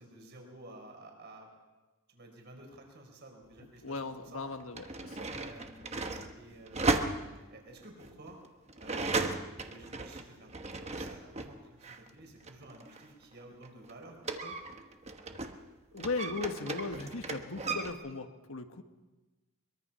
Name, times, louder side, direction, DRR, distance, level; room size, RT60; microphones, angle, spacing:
voice 1, 0.0-1.5 2.1-4.0 4.3-4.5 5.3-8.4 8.8-10.5 10.8-14.5, right 1 dB, 50° right, 2 dB, 4.6 m, -52 dB
sound 1, 3.6-3.7 4.5-11.6 11.8-15.6 16.0-17.9, right 3 dB, 30° right, 1.2 m, -36 dB
voice 2, 3.8-5.3 15.9-18.8, left 3 dB, 70° left, 7 dB, 1.4 m, -37 dB
23.0 x 22.5 x 5.6 m, 1.2 s
head